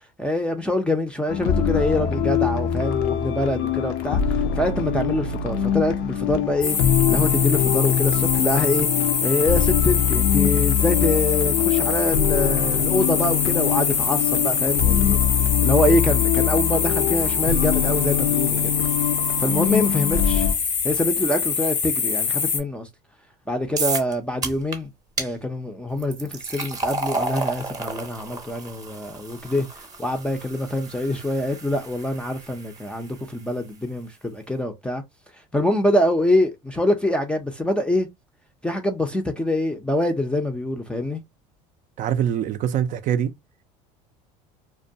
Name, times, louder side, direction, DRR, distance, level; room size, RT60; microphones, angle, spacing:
voice 1, 0.2-4.2 4.6-6.8 7.1-8.9 9.2-15.2 15.6-18.7 19.4-20.5 20.8-22.9 23.5-24.9 25.2-29.7 30.0-35.0 35.5-38.1 38.6-41.2, left 1 dB, 5° left, 0.5 m, -25 dB
sound 1, 1.3-20.5, left 9 dB, 65° left, 0.4 m, -23 dB
sound 2, 6.6-22.6, left 6 dB, 85° left, 0.9 m, -24 dB
sound 3, 23.8-24.1 24.4-24.8 25.2-25.3 26.0-33.1, right 3 dB, 20° right, 0.8 m, -32 dB
voice 2, 42.0-43.3, right 9 dB, 50° right, 0.4 m, -23 dB
2.2 x 2.1 x 2.6 m
supercardioid pair, 100°, 17 cm